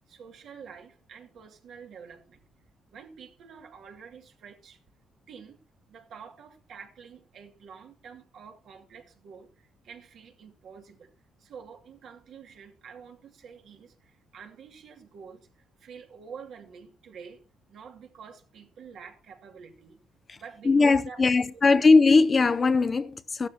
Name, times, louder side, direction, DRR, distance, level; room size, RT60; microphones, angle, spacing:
voice 1, 0.1-2.5 2.9-4.8 5.3-5.6 5.9-11.1 11.4-20.0 20.3-21.9, right 6 dB, 70° right, 2.3 m, -48 dB
voice 2, 20.6-23.5, left 4 dB, 35° left, 0.6 m, -20 dB
14.0 x 12.5 x 2.9 m
cardioid pair, 90°, 0 cm